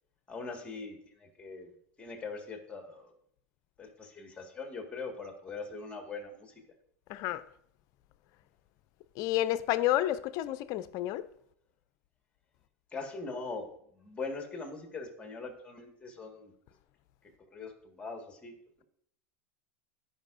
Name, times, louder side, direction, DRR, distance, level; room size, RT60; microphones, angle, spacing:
voice 1, 0.3-1.7 2.0-3.1 3.8-6.5 12.9-16.5 17.5-18.5, left 4 dB, 15° left, 1.7 m, -41 dB
voice 2, 7.1-7.4 9.2-11.3, left 14 dB, 50° left, 0.5 m, -30 dB
14.0 x 5.5 x 2.6 m
hypercardioid pair, 95°, 8 cm